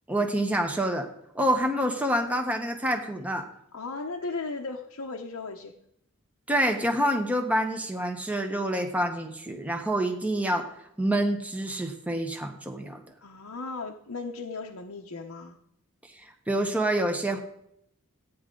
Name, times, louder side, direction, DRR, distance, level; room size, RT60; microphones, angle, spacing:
voice 1, 0.1-1.1 1.3-3.5 6.5-10.7 11.0-13.0 16.5-17.4, right 1 dB, 5° right, 3 dB, 1.0 m, -27 dB
voice 2, 3.7-5.7 13.2-15.6, left 3 dB, 90° left, 1 dB, 0.9 m, -36 dB
15.0 x 9.4 x 3.8 m, 0.74 s
head